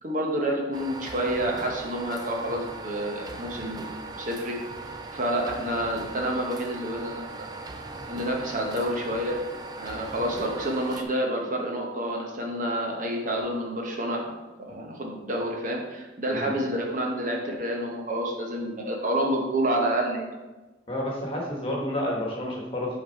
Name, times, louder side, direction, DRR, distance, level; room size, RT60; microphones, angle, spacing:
voice 1, 0.0-3.8 4.2-4.6 5.1-7.5 8.1-9.4 9.8-14.3 14.6-20.3, right 1 dB, 45° right, 0 dB, 0.9 m, -29 dB
sound 1, 0.7-11.0, right 3 dB, 20° right, 0.4 m, -39 dB
voice 2, 20.9-23.0, left 1 dB, 30° left, -2 dB, 1.4 m, -30 dB
5.8 x 4.0 x 4.6 m, 1.2 s
head